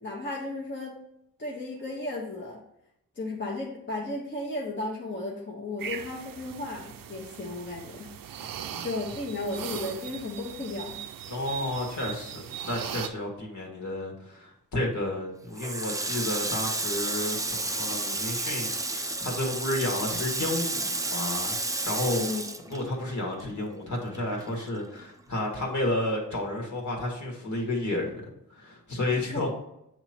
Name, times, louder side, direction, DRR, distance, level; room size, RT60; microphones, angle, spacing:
voice 1, 0.0-1.0 1.4-2.6 3.1-8.4 8.8-11.0 22.2-22.4 29.3-29.5, left 2 dB, 35° left, -3 dB, 1.1 m, -34 dB
sound 1, 5.8-13.1, right 9 dB, 80° right, 0.5 m, -39 dB
voice 2, 8.4-8.9 11.3-22.3 22.7-28.2 28.5-29.5, left 1 dB, 60° left, 0 dB, 1.9 m, -31 dB
Water tap faucet, 15.5-23.4 23.7-25.0, right 2 dB, 10° right, 0.4 m, -31 dB
8.4 x 3.1 x 4.3 m, 0.81 s
wide cardioid pair, 100°, 33 cm